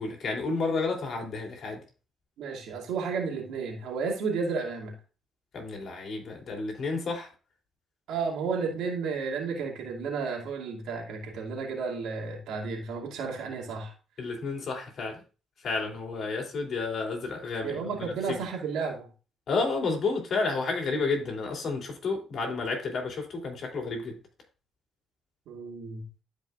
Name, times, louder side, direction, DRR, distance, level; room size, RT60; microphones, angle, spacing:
voice 1, 0.0-1.8 5.5-7.3 14.2-15.2 15.6-18.4 19.5-24.2, left 3 dB, 60° left, 1 dB, 3.2 m, -31 dB
voice 2, 2.4-4.9 8.1-13.9 17.6-19.1 25.5-26.1, right 5 dB, 85° right, 0 dB, 2.3 m, -32 dB
12.5 x 5.2 x 2.5 m, 0.35 s
cardioid pair, 90°, 0 cm